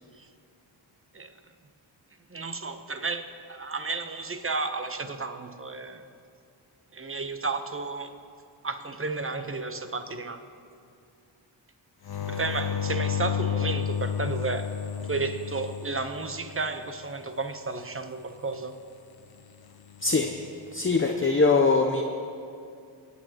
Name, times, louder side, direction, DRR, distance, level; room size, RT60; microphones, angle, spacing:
voice 1, 2.3-6.1 6.9-8.1 8.6-10.4 12.3-14.7 15.1-18.8, right 3 dB, 25° right, 8 dB, 1.0 m, -32 dB
sound 1, 12.0-16.7 19.9-20.5, left 8 dB, 50° left, 0.9 m, -31 dB
voice 2, 20.7-22.0, left 3 dB, 25° left, 2 dB, 0.8 m, -22 dB
24.0 x 8.9 x 3.0 m, 2.4 s
cardioid pair, 45°, 49 cm